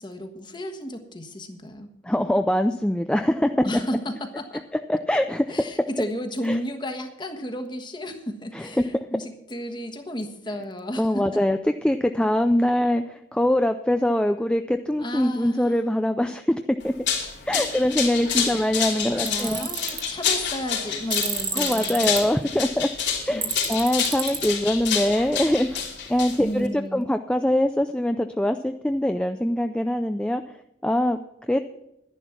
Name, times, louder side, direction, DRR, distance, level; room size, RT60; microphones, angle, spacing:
voice 1, 0.0-1.9 3.6-4.6 5.5-11.3 15.0-15.8 18.3-18.7 19.2-22.1 23.3-23.5 26.4-27.1, equal, 25° left, 6 dB, 1.3 m, -33 dB
voice 2, 2.0-3.7 4.9-5.7 6.4-6.6 8.5-9.1 11.0-17.1 17.5-19.7 21.5-22.9 23.3-31.6, left 1 dB, 5° left, 7 dB, 0.4 m, -23 dB
sound 1, 16.8-26.7, left 7 dB, 70° left, 3.1 m, -28 dB
Tools, 19.3-20.0 21.1-22.2 23.4-24.5, right 5 dB, 25° right, 1.6 m, -30 dB
11.5 x 11.0 x 5.9 m, 0.83 s
head